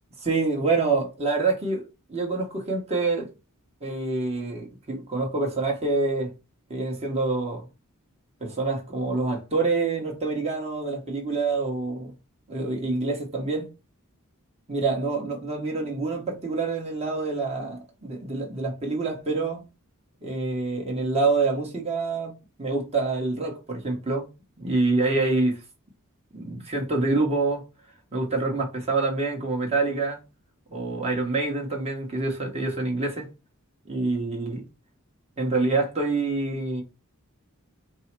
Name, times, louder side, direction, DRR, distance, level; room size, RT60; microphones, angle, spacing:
voice 1, 0.2-3.3 3.8-6.3 6.7-7.6 8.4-12.1 12.5-13.7 14.7-19.6 20.2-24.3 24.6-25.6 26.3-27.6 28.1-30.2 30.7-33.3 33.9-34.6 35.4-36.8, right 3 dB, 30° right, 1.1 m, -26 dB
4.6 x 2.0 x 4.4 m
head